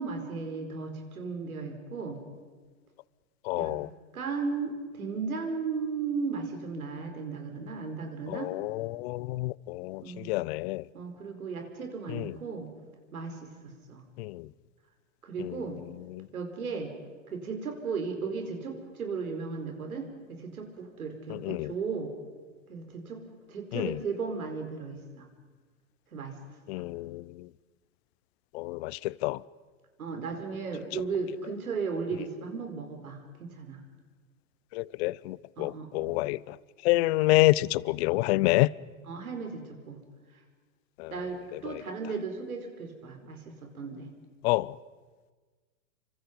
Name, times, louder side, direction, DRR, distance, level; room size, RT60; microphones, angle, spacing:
voice 1, 0.0-2.2 3.6-3.7 4.1-8.5 10.0-10.4 10.9-12.7 13.1-14.0 15.2-15.8 16.3-16.9 17.3-22.1 22.7-23.2 23.5-25.3 26.1-26.3 26.7-26.8 30.0-33.8 35.6-36.1 36.9-37.0 39.1-40.0 41.1-44.1, right 5 dB, 90° right, 4.8 m, -35 dB
voice 2, 3.5-3.9 8.3-10.8 12.1-12.3 14.2-14.5 15.4-15.6 16.1-16.3 21.3-21.7 23.7-24.0 26.7-27.5 28.5-29.4 34.7-36.6 36.8-38.7 41.0-41.1 41.7-41.8 44.4-44.7, left 20 dB, 50° left, 0.6 m, -28 dB
28.0 x 25.0 x 5.4 m
hypercardioid pair, 115°, 42 cm